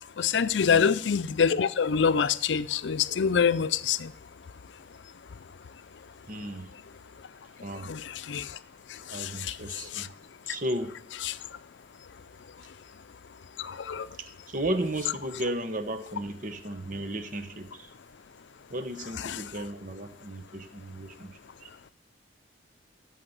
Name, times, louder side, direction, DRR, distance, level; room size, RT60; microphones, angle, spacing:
voice 1, 0.2-4.1 7.8-8.5 9.1-9.5 9.9-10.1 11.2-11.3 13.6-14.1 19.2-19.4, left 6 dB, 80° left, 0.5 m, -26 dB
voice 2, 6.3-6.7 7.6-7.9 9.1-10.1 10.5-10.9 14.2-17.9 18.7-21.7, right 1 dB, 45° right, 1.0 m, -34 dB
15.0 x 5.7 x 8.0 m
head